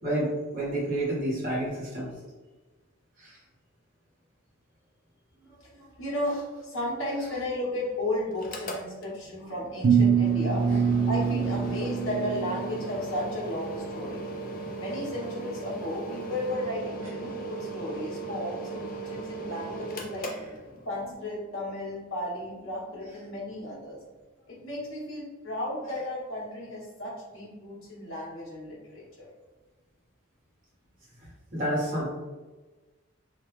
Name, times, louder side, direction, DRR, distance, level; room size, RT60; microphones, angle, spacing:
voice 1, 0.0-2.1 3.2-3.4 31.5-32.1, right 1 dB, 40° right, -7 dB, 1.3 m, -29 dB
voice 2, 5.4-14.5 14.8-20.3 20.8-24.0 24.5-29.3, left 1 dB, 75° left, -5 dB, 1.1 m, -34 dB
Mechanical fan, 8.3-21.1, right 2 dB, 40° left, 0.4 m, -38 dB
sound 1, 9.8-13.0, right 6 dB, 70° right, 0.5 m, -24 dB
2.9 x 2.3 x 3.1 m, 1.2 s
head